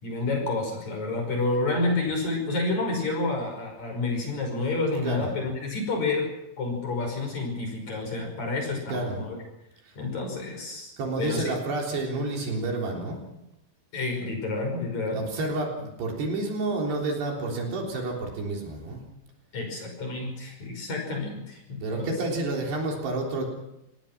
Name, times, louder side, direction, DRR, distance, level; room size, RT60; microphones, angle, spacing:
voice 1, 0.0-6.3 6.6-9.4 9.9-10.9 11.2-11.4 13.9-15.2 19.5-22.1, left 3 dB, 40° left, 2 dB, 6.7 m, -29 dB
voice 2, 8.9-9.3 9.9-10.0 11.0-13.2 15.1-19.0 21.8-23.4, right 2 dB, 65° right, 0 dB, 5.6 m, -30 dB
27.0 x 19.0 x 6.1 m, 0.86 s
omnidirectional pair, 5.4 m